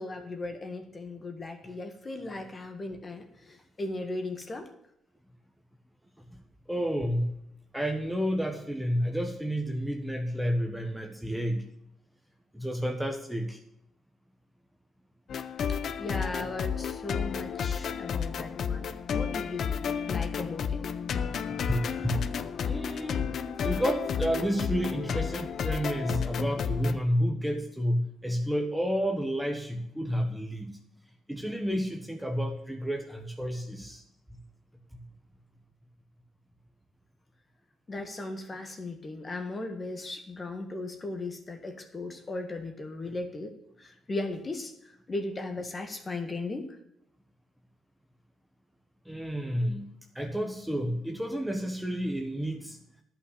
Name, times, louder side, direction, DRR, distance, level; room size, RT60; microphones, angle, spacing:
voice 1, 0.0-4.7 16.0-19.7 20.1-20.8 37.9-43.5 43.8-46.7, left 2 dB, 30° left, 6 dB, 1.7 m, -37 dB
voice 2, 6.7-7.3 7.7-11.6 12.5-13.6 21.7-22.2 22.7-23.3 23.6-30.8 31.3-34.0 49.0-49.9 50.1-52.8, equal, 5° right, 4 dB, 1.2 m, -30 dB
sound 1, 15.3-27.0, left 7 dB, 60° left, 0.6 m, -32 dB
10.5 x 5.8 x 8.1 m, 0.78 s
cardioid pair, 90°, 0 cm